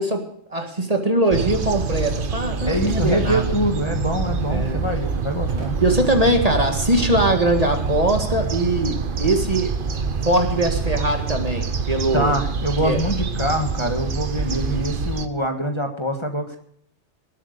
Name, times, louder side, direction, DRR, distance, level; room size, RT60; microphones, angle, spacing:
voice 1, 0.0-3.4 4.5-4.8 5.8-9.7 10.2-12.3 12.8-13.0 14.4-14.8, right 1 dB, 30° right, 4 dB, 1.9 m, -21 dB
sound 1, 1.3-15.3, right 5 dB, 50° right, 1.0 m, -26 dB
voice 2, 2.6-5.8 12.1-16.6, equal, 25° left, 3 dB, 1.6 m, -24 dB
Crowd / Fireworks, 5.5-12.0, right 3 dB, 70° right, 3.8 m, -45 dB
19.5 x 8.3 x 6.6 m, 0.65 s
omnidirectional pair, 1.2 m